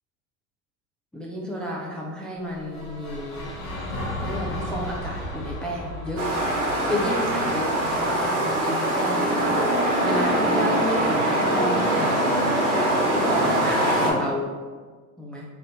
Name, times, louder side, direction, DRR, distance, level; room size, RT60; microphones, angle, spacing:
voice 1, 1.1-3.5 4.2-6.2 6.8-9.6 10.0-12.4 13.1-14.5 15.2-15.5, equal, ahead, -3 dB, 0.4 m, -31 dB
sound 1, 2.4-8.6, left 1 dB, 75° left, 1.3 m, -35 dB
sound 2, 6.2-14.1, right 1 dB, 80° right, 1.2 m, -23 dB
3.6 x 2.6 x 3.9 m, 1.5 s
hypercardioid pair, 85°, 42 cm